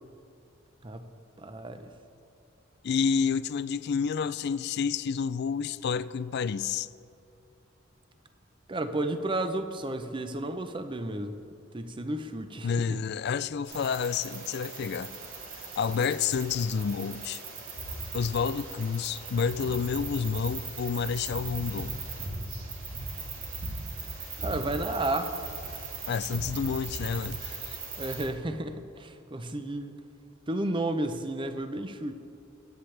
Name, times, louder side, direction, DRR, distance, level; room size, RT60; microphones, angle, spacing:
voice 1, 1.4-1.9 8.7-11.4 11.7-13.0 24.4-25.3 28.0-30.0 30.5-32.1, right 1 dB, 25° right, 8 dB, 0.6 m, -32 dB
voice 2, 2.8-6.9 12.6-15.1 15.6-17.4 18.1-22.0 26.1-27.8, left 6 dB, 55° left, 16 dB, 0.3 m, -29 dB
sound 1, 13.7-28.2, right 3 dB, 85° right, 2.7 m, -38 dB
19.0 x 8.8 x 3.3 m, 2.6 s
head